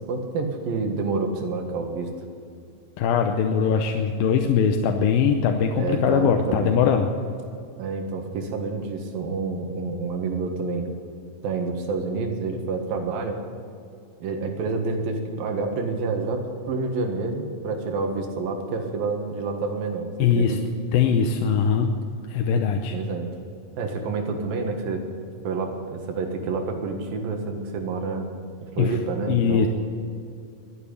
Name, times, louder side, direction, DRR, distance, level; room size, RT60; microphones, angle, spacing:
voice 1, 0.1-2.1 5.8-7.0 7.8-10.9 11.4-13.4 14.2-20.6 22.9-23.3 23.8-25.0 25.4-28.3 28.6-29.7, right 4 dB, 80° right, 4 dB, 3.4 m, -28 dB
voice 2, 3.0-7.1 20.2-20.6 20.9-21.9 22.3-23.0 28.8-28.9 29.3-29.7, left 7 dB, 85° left, 4 dB, 2.6 m, -21 dB
12.5 x 10.5 x 9.7 m, 2.5 s
omnidirectional pair, 4.1 m